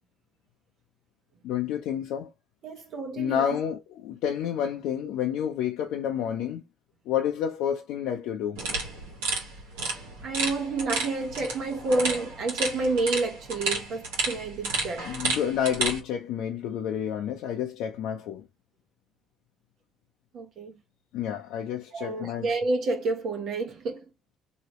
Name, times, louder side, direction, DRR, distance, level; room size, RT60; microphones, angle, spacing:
voice 1, 1.4-2.3 3.2-6.6 7.1-8.6 15.0-18.4 21.1-22.5, left 9 dB, 75° left, 0.6 m, -29 dB
voice 2, 2.6-3.4 9.8-9.9 10.2-15.1 20.3-20.7 21.9-24.0, right 3 dB, 65° right, 1.0 m, -29 dB
sound 1, 8.6-16.0, right 3 dB, 90° right, 1.4 m, -31 dB
3.0 x 2.8 x 3.0 m
supercardioid pair, 70°, 0 cm